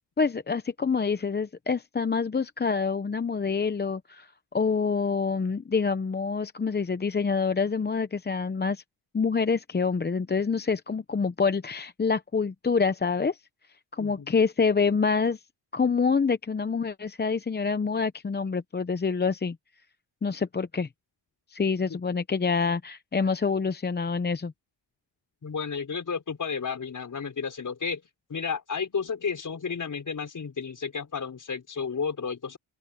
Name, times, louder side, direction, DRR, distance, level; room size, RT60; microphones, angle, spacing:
voice 1, 0.2-8.8 9.1-13.4 13.9-15.4 15.7-19.6 20.2-20.9 21.5-24.5, left 5 dB, 20° left, 0.8 m, -26 dB
voice 2, 14.0-14.3 21.9-22.0 25.4-28.0 28.3-32.6, left 5 dB, 40° left, 5.4 m, -32 dB
open air
cardioid pair, 90°, 46 cm